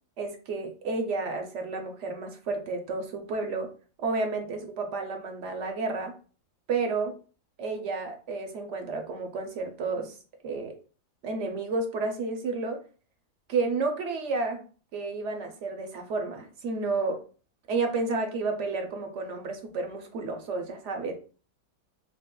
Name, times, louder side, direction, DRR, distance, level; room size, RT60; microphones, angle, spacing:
voice 1, 0.2-3.7 4.0-6.1 6.7-7.1 7.6-10.2 10.4-10.7 11.2-12.8 13.5-14.6 14.9-17.2 17.7-21.1, right 3 dB, 65° right, 4 dB, 0.8 m, -31 dB
5.1 x 2.1 x 2.2 m, 0.38 s
omnidirectional pair, 1.5 m